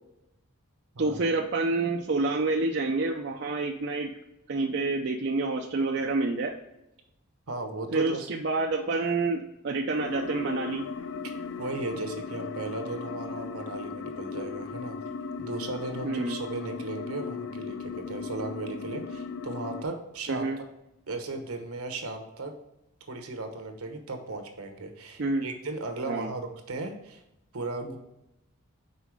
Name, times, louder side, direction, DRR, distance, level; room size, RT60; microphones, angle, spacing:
voice 1, 1.0-4.1 4.5-6.5 7.9-10.9 16.0-16.4 20.3-20.6 25.2-25.4 26.1-26.3, right 3 dB, 50° right, 2 dB, 0.5 m, -28 dB
voice 2, 7.5-8.3 11.2-15.0 15.4-20.5 21.1-22.5 23.1-27.2 27.5-28.0, right 2 dB, 80° right, 5 dB, 1.0 m, -36 dB
sound 1, 10.0-19.8, left 5 dB, 50° left, 0.3 m, -37 dB
5.5 x 4.0 x 4.8 m, 0.88 s
head